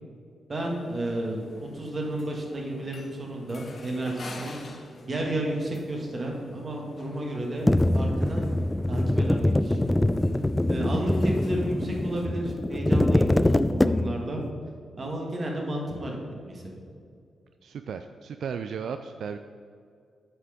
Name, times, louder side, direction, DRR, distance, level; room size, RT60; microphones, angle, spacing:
voice 1, 0.5-4.6 5.1-8.5 8.9-9.9 10.7-14.4 15.0-16.2 16.5-16.8, right 1 dB, 40° right, 0 dB, 1.8 m, -32 dB
sound 1, 0.6-12.2, left 2 dB, 50° left, 1.1 m, -47 dB
Thunder Drum, 7.7-14.4, left 1 dB, 10° left, 0.3 m, -24 dB
voice 2, 17.6-19.4, right 6 dB, 80° right, 8 dB, 0.3 m, -35 dB
7.9 x 6.0 x 5.1 m, 2.3 s
cardioid pair, 95°, 0 cm